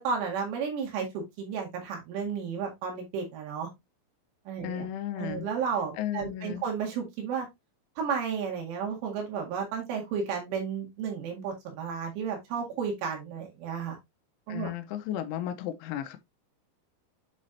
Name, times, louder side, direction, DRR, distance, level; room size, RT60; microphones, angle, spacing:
voice 1, 0.0-3.7 4.5-4.9 5.2-7.5 8.0-14.0 14.5-14.7, right 6 dB, 75° right, 4.3 m, -33 dB
voice 2, 4.6-5.5 6.0-6.7 14.5-16.2, left 11 dB, 85° left, 3.1 m, -34 dB
9.0 x 4.2 x 2.6 m
omnidirectional pair, 5.6 m